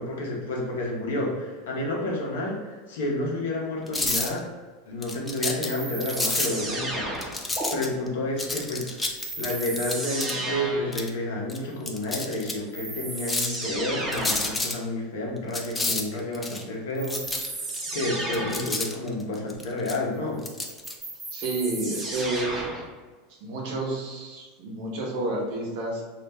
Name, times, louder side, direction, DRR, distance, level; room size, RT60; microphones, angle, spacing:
voice 1, 0.0-4.4 4.9-7.1 7.7-9.0 9.4-17.6 17.9-20.4, left 1 dB, 80° left, -2 dB, 0.7 m, -30 dB
sound 1, 3.9-4.4 5.0-5.7 6.0-6.5 7.2-8.1 8.4-10.3 10.9-11.1 11.5-11.6 11.9-12.5 13.2-13.7 14.1-14.7 15.5-16.6 17.1-17.8 18.2-20.0 20.4-20.9, left 2 dB, 15° left, 0.4 m, -29 dB
sound 2, 5.6-7.7 9.2-11.0 12.3-12.4 12.7-14.6 17.0-18.8 20.5-22.9, right 2 dB, 20° right, 0.7 m, -33 dB
voice 2, 21.3-22.6 23.4-26.0, right 2 dB, 65° right, -2 dB, 0.8 m, -30 dB
2.4 x 2.1 x 3.4 m, 1.3 s
hypercardioid pair, 95°, 0 cm